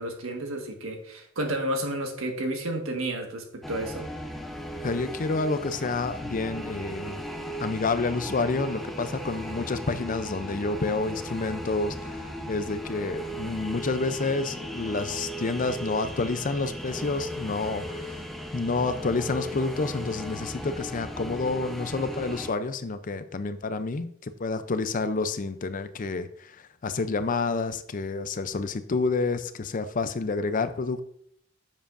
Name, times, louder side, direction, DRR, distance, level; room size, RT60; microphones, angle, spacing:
voice 1, 0.0-4.1, right 1 dB, 80° right, 3 dB, 1.6 m, -31 dB
sound 1, 3.6-22.5, equal, ahead, 0.7 m, -37 dB
voice 2, 4.8-7.2 7.6-18.2 18.5-31.0, left 3 dB, 40° left, 11 dB, 0.5 m, -29 dB
10.0 x 7.4 x 2.6 m, 0.67 s
head